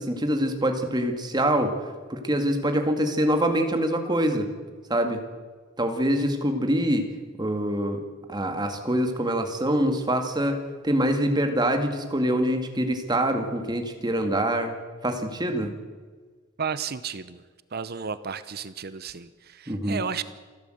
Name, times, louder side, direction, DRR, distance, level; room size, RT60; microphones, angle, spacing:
voice 1, 0.0-4.5 4.9-5.2 5.8-7.1 7.4-8.0 8.3-14.7 15.0-15.7 19.7-20.0, right 1 dB, 20° right, 5 dB, 2.2 m, -25 dB
voice 2, 16.6-17.4 17.7-20.2, right 6 dB, 50° right, 14 dB, 0.8 m, -33 dB
28.0 x 12.0 x 7.8 m, 1.5 s
head